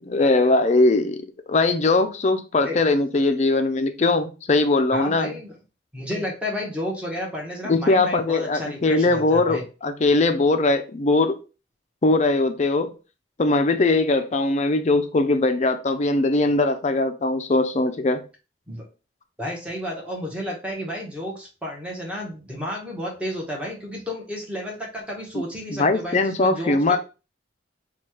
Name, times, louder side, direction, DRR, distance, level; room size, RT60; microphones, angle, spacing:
voice 1, 0.1-5.4 7.6-11.4 12.0-12.9 13.4-18.2 25.3-25.4 25.7-27.0, left 2 dB, 35° left, 0.4 m, -20 dB
voice 2, 4.9-5.5 5.9-9.6 18.7-18.8 19.4-27.0, equal, 5° right, 1.0 m, -32 dB
3.1 x 2.3 x 4.3 m
head